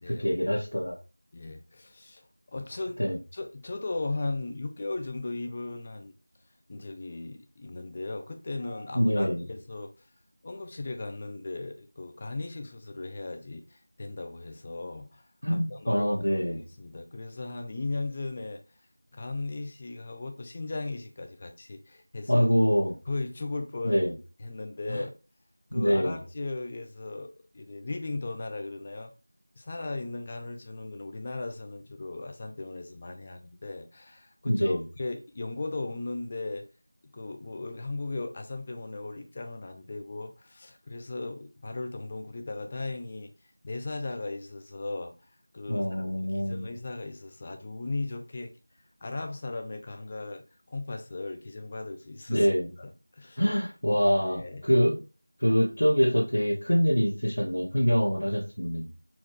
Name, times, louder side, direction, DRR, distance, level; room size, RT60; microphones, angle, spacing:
voice 1, 0.1-0.9 3.0-3.2 8.9-9.4 15.4-16.6 22.3-22.9 23.8-24.1 24.9-25.0 25.7-26.2 34.4-34.8 45.7-46.7 52.3-52.7 53.4-55.0 55.4-58.9, equal, 70° left, 1.4 m, -25 dB
voice 2, 1.3-3.0 3.3-6.1 6.7-9.9 10.4-16.0 16.5-18.6 19.1-22.5 23.1-24.0 24.4-25.1 25.7-29.1 29.6-36.7 37.1-43.3 43.6-45.1 45.5-45.9 46.2-48.5 49.0-52.5 52.8-53.4 54.3-54.7, left 2 dB, 20° left, 0.4 m, -37 dB
4.3 x 2.4 x 4.6 m
figure-of-eight pair, 175°, 0 cm